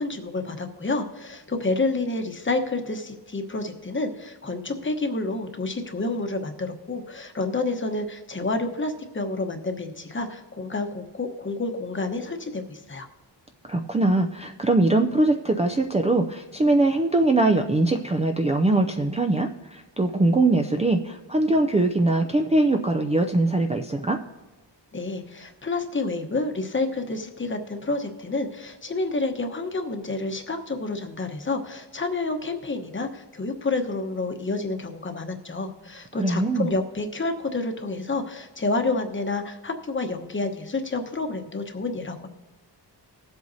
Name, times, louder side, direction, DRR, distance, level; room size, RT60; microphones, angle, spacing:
voice 1, 0.0-13.1 24.9-42.3, left 3 dB, 25° left, 5 dB, 1.0 m, -29 dB
voice 2, 13.6-24.2 36.1-36.7, right 2 dB, 15° right, 3 dB, 0.4 m, -22 dB
20.0 x 7.9 x 2.7 m, 1.3 s
wide cardioid pair, 125°, 43 cm